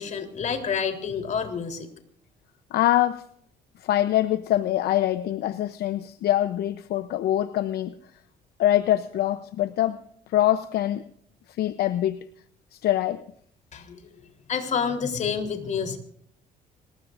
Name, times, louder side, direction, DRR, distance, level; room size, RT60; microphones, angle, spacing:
voice 1, 0.0-1.9 13.7-14.1 14.5-16.0, left 6 dB, 45° left, 5 dB, 3.7 m, -28 dB
voice 2, 2.7-3.3 3.8-8.0 8.6-11.1 11.5-12.2 12.7-13.3, left 13 dB, 70° left, 12 dB, 0.8 m, -24 dB
25.5 x 20.0 x 2.6 m, 0.65 s
cardioid pair, 110°, 17 cm